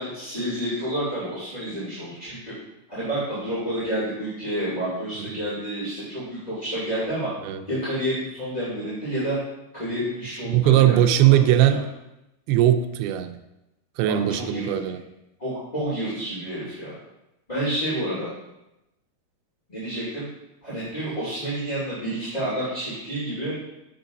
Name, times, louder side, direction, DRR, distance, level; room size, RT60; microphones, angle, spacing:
voice 1, 0.0-2.5 2.9-7.3 7.7-9.4 9.7-11.3 11.7-11.8 14.1-14.7 15.4-16.9 17.5-18.3 19.7-20.3 20.6-23.6, right 1 dB, 15° left, -11 dB, 2.1 m, -29 dB
voice 2, 10.5-11.9 12.5-13.4 14.0-15.0, right 12 dB, 85° right, 8 dB, 2.5 m, -19 dB
9.0 x 6.8 x 2.6 m, 0.91 s
omnidirectional pair, 4.4 m